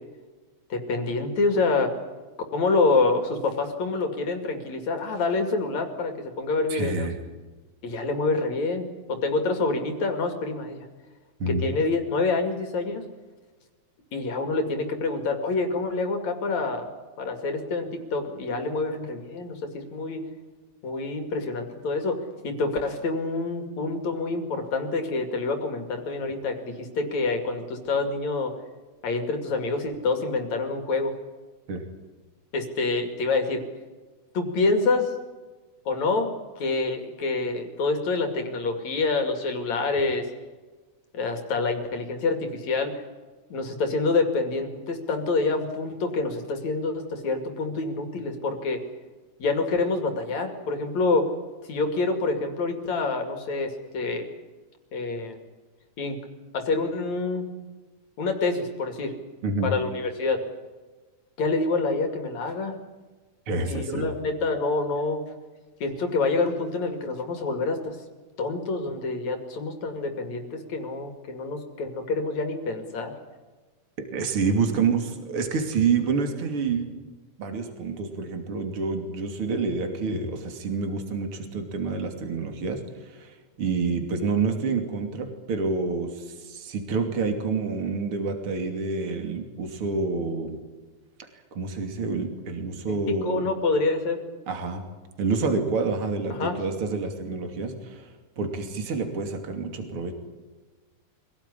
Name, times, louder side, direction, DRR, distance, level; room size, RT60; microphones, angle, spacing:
voice 1, 0.7-2.0 2.5-7.1 7.8-10.9 11.5-13.0 14.1-16.9 17.2-20.2 20.8-28.5 29.0-31.1 32.5-33.6 34.3-35.2 35.9-36.3 36.6-40.3 41.1-42.9 43.5-48.8 49.4-51.3 51.7-54.3 54.9-55.4 56.0-56.3 56.5-57.5 58.2-59.2 59.6-60.4 61.4-62.8 63.6-65.2 65.8-68.0 68.4-73.1 92.9-94.2 96.3-96.6, left 3 dB, 70° left, 5 dB, 3.6 m, -27 dB
voice 2, 6.7-7.1 11.4-11.6 31.7-31.8 59.4-59.7 63.5-64.1 74.1-77.0 77.4-90.6 91.2-93.5 94.5-94.8 95.2-98.1 98.4-100.2, right 4 dB, 45° right, 5 dB, 3.5 m, -28 dB
24.0 x 17.5 x 9.9 m, 1.3 s
omnidirectional pair, 3.4 m